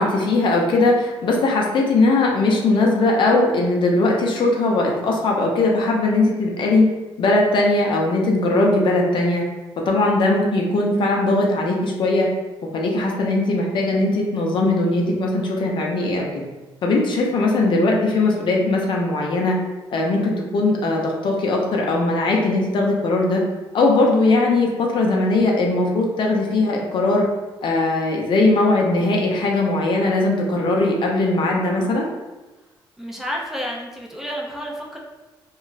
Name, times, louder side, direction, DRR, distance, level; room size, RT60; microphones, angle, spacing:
voice 1, 0.0-6.9 7.2-9.4 9.9-12.3 12.7-16.5 16.8-19.6 19.9-23.4 23.7-27.3 27.6-32.1, left 2 dB, 60° left, -1 dB, 0.6 m, -19 dB
voice 2, 33.0-35.0, equal, 5° right, -2 dB, 0.5 m, -30 dB
2.4 x 2.0 x 3.8 m, 1.1 s
cardioid pair, 90°, 9 cm